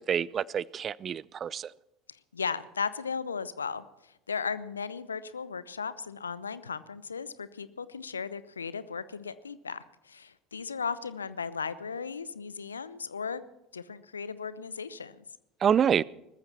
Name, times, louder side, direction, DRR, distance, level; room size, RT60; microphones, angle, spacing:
voice 1, 0.0-1.7 15.6-16.0, right 8 dB, 35° right, 0.5 m, -27 dB
voice 2, 2.1-13.4 13.7-15.2, left 5 dB, 80° left, 0.8 m, -36 dB
20.5 x 14.0 x 4.3 m
figure-of-eight pair, 70°, 0 cm